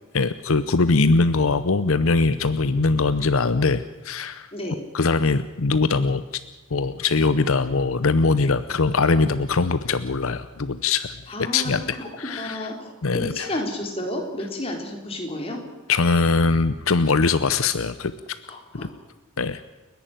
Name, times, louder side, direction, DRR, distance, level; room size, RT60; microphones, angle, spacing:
voice 1, 0.1-4.5 4.9-6.2 6.7-12.7 13.0-13.5 15.9-18.1 19.4-19.6, left 3 dB, 70° left, 12 dB, 0.8 m, -21 dB
voice 2, 11.3-11.8 12.2-15.6 18.5-18.9, left 1 dB, 25° left, 2 dB, 4.0 m, -31 dB
30.0 x 11.0 x 9.0 m, 1.2 s
head